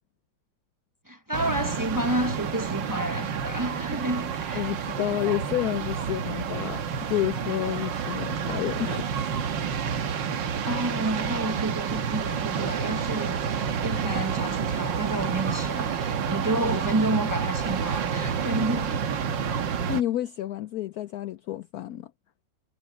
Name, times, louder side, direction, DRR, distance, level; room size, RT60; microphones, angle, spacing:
voice 1, 1.1-4.8 10.6-19.1, right 1 dB, 25° right, 0.4 m, -30 dB
sound 1, 1.3-20.0, right 7 dB, 80° right, 1.9 m, -29 dB
voice 2, 4.5-6.8 7.1-9.1 19.9-22.1, left 13 dB, 70° left, 0.9 m, -29 dB
omnidirectional pair, 2.0 m